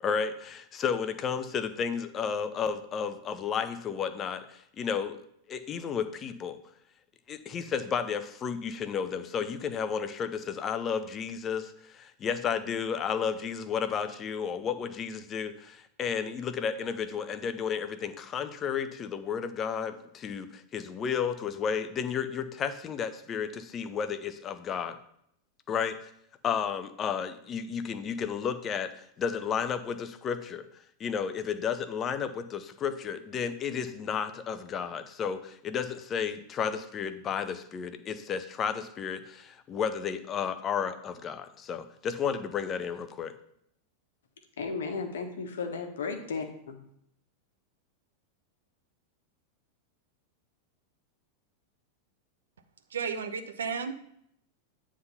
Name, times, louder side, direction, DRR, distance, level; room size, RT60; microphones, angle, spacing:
voice 1, 0.0-5.2 5.5-6.6 7.3-25.0 25.7-26.0 26.4-28.9 29.2-30.7 31.0-43.3, left 7 dB, 25° left, 11 dB, 0.7 m, -32 dB
voice 2, 44.6-46.8, left 4 dB, 60° left, 5 dB, 1.3 m, -35 dB
voice 3, 52.9-53.9, right 6 dB, 70° right, 8 dB, 0.8 m, -33 dB
9.5 x 3.7 x 5.6 m, 0.72 s
figure-of-eight pair, 90°, 0 cm